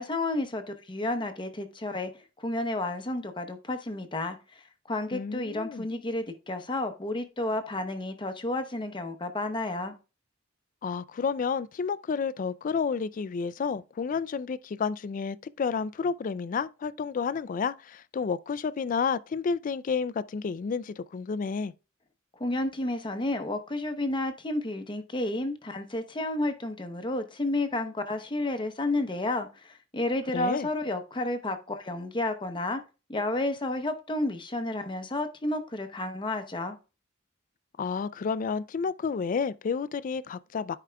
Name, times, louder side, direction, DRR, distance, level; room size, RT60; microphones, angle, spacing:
voice 1, 0.0-2.1 2.4-9.9 22.4-32.8 33.1-36.8, left 2 dB, 25° left, 0.8 m, -31 dB
voice 2, 5.1-5.9 10.8-21.7 30.3-30.7 37.8-40.8, left 5 dB, 40° left, 0.3 m, -30 dB
13.5 x 4.8 x 2.3 m
head